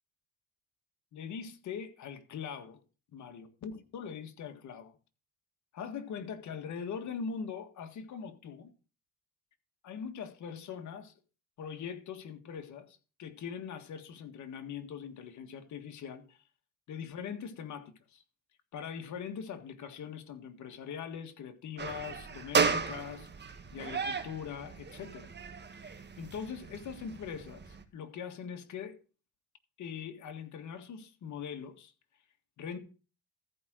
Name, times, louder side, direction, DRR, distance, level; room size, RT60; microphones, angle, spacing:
voice 1, 1.1-2.8 3.1-4.9 5.7-8.7 9.8-11.1 11.6-16.4 16.9-18.2 18.7-25.3 25.7-29.0 29.8-31.9 32.6-32.8, left 7 dB, 70° left, 1.7 m, -42 dB
sound 1, 21.8-27.8, right 5 dB, 35° right, 1.6 m, -35 dB
14.0 x 5.1 x 6.2 m
cardioid pair, 90°, 30 cm